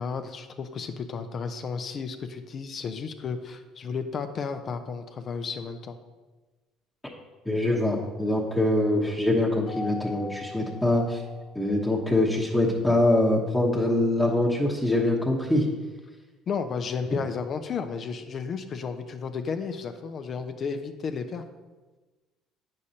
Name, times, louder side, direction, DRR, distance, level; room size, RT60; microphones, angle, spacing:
voice 1, 0.0-6.0 16.5-21.4, left 5 dB, 50° left, 8 dB, 0.5 m, -33 dB
voice 2, 7.5-11.2 11.5-15.7, left 1 dB, 5° left, -4 dB, 1.0 m, -24 dB
Mallet percussion, 9.7-12.1, left 3 dB, 70° left, 1.1 m, -41 dB
8.2 x 6.4 x 2.8 m, 1.2 s
supercardioid pair, 80°, 0 cm